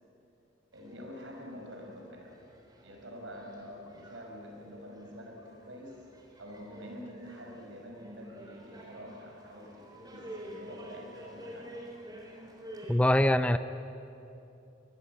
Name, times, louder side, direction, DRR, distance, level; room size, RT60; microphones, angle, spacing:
sound 1, 0.7-13.0, equal, 20° right, 3.5 m, -50 dB
voice 1, 0.7-2.4 2.8-6.1 6.4-11.8, equal, 80° right, 2 dB, 5.3 m, -46 dB
voice 2, 12.9-13.6, left 1 dB, 5° left, 11 dB, 0.5 m, -23 dB
22.0 x 21.5 x 8.5 m, 2.8 s
head